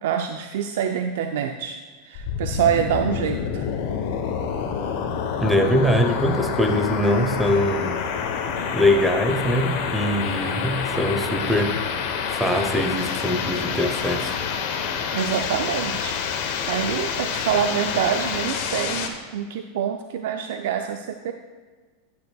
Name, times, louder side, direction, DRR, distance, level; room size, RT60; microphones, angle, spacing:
voice 1, 0.0-1.8 2.0-3.7 15.1-21.3, right 8 dB, 80° right, 6 dB, 0.4 m, -26 dB
sound 1, 2.2-19.1, left 6 dB, 65° left, 1.0 m, -27 dB
voice 2, 5.4-8.0 8.7-11.8 12.3-14.4, left 1 dB, 5° right, 5 dB, 0.8 m, -22 dB
10.0 x 9.4 x 2.3 m, 1.4 s
supercardioid pair, 120°, 0 cm